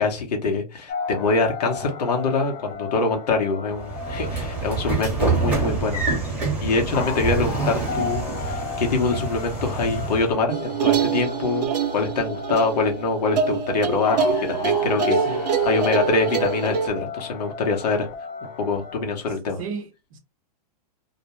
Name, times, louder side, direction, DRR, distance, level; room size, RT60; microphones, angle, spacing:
voice 1, 0.0-6.0 6.6-14.2 14.5-15.2 15.6-18.1 18.6-19.6, left 3 dB, 75° left, 1.0 m, -24 dB
sound 1, 0.9-19.0, left 5 dB, 25° left, 0.5 m, -35 dB
Train / Sliding door, 3.8-10.4, right 4 dB, 10° right, 1.0 m, -26 dB
sound 2, 10.5-16.9, right 6 dB, 90° right, 0.7 m, -25 dB
voice 2, 14.8-15.4 19.6-20.2, right 5 dB, 55° right, 0.8 m, -35 dB
2.4 x 2.2 x 2.9 m
hypercardioid pair, 130°, 21 cm